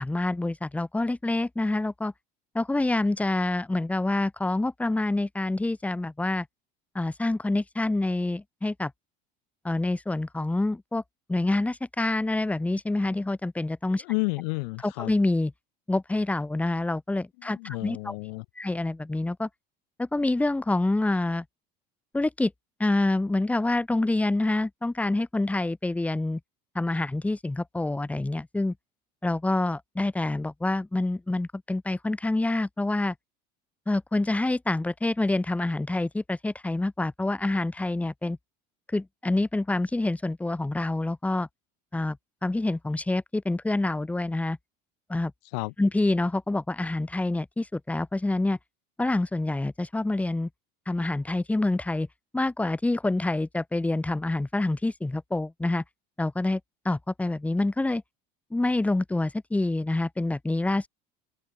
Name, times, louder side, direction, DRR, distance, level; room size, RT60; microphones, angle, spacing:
voice 1, 0.0-2.1 2.6-6.5 7.0-8.9 9.6-11.0 11.3-14.0 14.8-15.5 15.9-18.2 18.6-19.5 20.0-21.4 22.1-22.5 22.8-26.4 26.8-28.7 29.2-33.1 33.9-38.4 38.9-41.5 41.9-42.2 42.4-44.6 45.1-45.3 45.8-48.6 49.0-50.5 50.9-52.1 52.3-55.8 56.2-56.6 56.9-58.0 58.5-60.9, left 2 dB, 5° left, 6.9 m, -27 dB
voice 2, 14.0-15.1 17.4-18.4 45.5-45.7, left 30 dB, 80° left, 6.2 m, -31 dB
cardioid pair, 155°, 20 cm